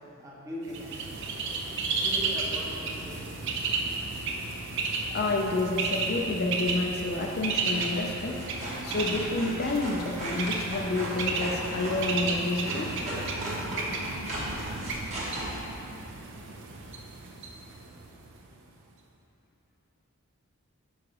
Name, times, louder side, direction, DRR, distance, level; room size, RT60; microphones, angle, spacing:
voice 1, 0.2-1.0 2.0-3.3, equal, 15° right, -4 dB, 0.8 m, -40 dB
Bird, 0.7-18.4, right 3 dB, 55° right, 0.5 m, -33 dB
voice 2, 5.1-8.4 8.8-12.9, left 2 dB, 45° left, 0 dB, 0.4 m, -29 dB
sound 1, 5.5-6.3 7.2-7.5 7.7-15.5, right 1 dB, 30° right, 1.1 m, -37 dB
5.1 x 4.8 x 4.8 m, 2.7 s
head